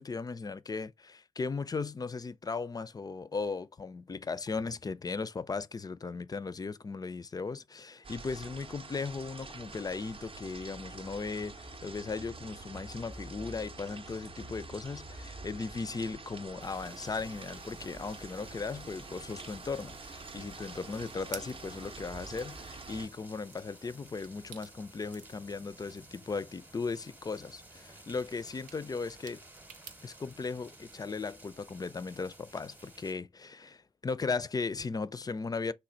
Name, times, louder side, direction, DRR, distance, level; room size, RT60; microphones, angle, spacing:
voice 1, 0.0-29.4 30.0-35.7, left 4 dB, 30° left, 0.4 m, -37 dB
sound 1, 8.0-23.1, right 3 dB, 45° right, 0.6 m, -46 dB
sound 2, 16.6-33.1, right 1 dB, 15° right, 0.8 m, -55 dB
sound 3, 20.7-30.4, right 9 dB, 80° right, 0.6 m, -54 dB
3.2 x 2.2 x 3.8 m
hypercardioid pair, 40°, 14 cm